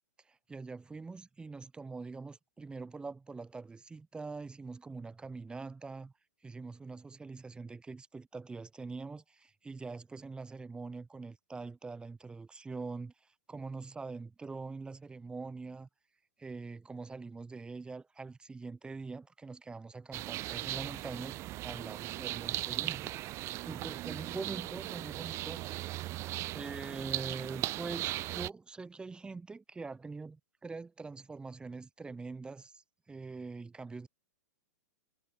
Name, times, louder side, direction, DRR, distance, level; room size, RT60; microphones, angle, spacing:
voice 1, 0.3-6.1 6.4-13.1 13.5-15.9 16.4-23.1 23.6-25.9 26.5-34.1, right 4 dB, 10° right, 3.5 m, -44 dB
sound 1, 20.1-28.5, right 17 dB, 30° right, 0.7 m, -38 dB
hypercardioid pair, 110°, 9 cm